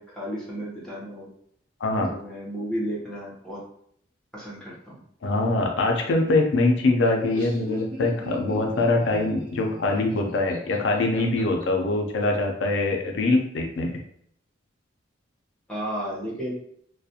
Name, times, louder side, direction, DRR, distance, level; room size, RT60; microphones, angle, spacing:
voice 1, 0.0-1.3 2.1-3.6 4.3-5.0 15.7-16.5, equal, 5° left, -6 dB, 0.8 m, -33 dB
voice 2, 1.8-2.1 5.2-14.0, left 2 dB, 65° left, 2 dB, 0.4 m, -23 dB
Laughter, 7.1-11.6, left 1 dB, 45° right, 1.0 m, -39 dB
2.4 x 2.1 x 2.7 m, 0.67 s
head